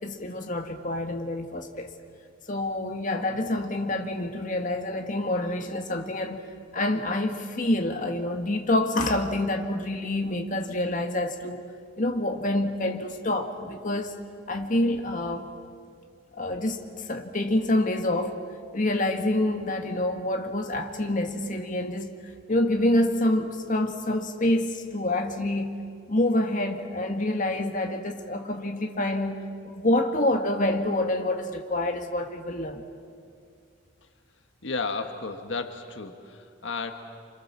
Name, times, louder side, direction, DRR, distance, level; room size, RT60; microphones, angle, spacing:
voice 1, 0.0-1.9 2.5-6.4 6.7-11.6 12.0-14.1 14.5-15.5 16.4-18.4 18.7-22.2 22.5-25.8 26.1-32.8, left 1 dB, 45° left, 4 dB, 1.9 m, -27 dB
voice 2, 34.6-36.9, left 4 dB, 80° left, 6 dB, 1.6 m, -33 dB
28.0 x 26.5 x 7.4 m, 2.2 s
head